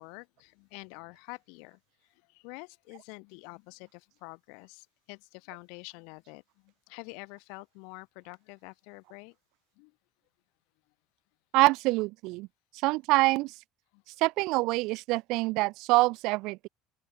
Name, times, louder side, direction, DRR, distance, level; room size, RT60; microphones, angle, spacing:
voice 1, 0.0-1.8 2.3-9.3 9.8-9.9 13.9-14.0, left 36 dB, 80° left, 0.8 m, -47 dB
voice 2, 11.5-12.5 12.8-13.5 14.2-16.7, right 22 dB, 70° right, 0.4 m, -25 dB
supercardioid pair, 110°, 0 cm